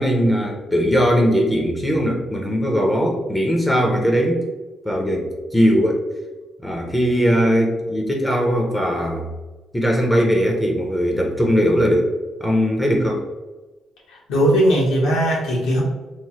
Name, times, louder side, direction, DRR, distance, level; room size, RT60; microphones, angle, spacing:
voice 1, 0.0-4.4 4.8-6.0 6.6-9.3 9.7-12.1 12.4-13.2, equal, 10° left, 0 dB, 0.5 m, -19 dB
voice 2, 14.3-15.8, equal, 85° left, -4 dB, 1.0 m, -18 dB
3.1 x 2.0 x 2.8 m, 1.2 s
cardioid pair, 90°, 0 cm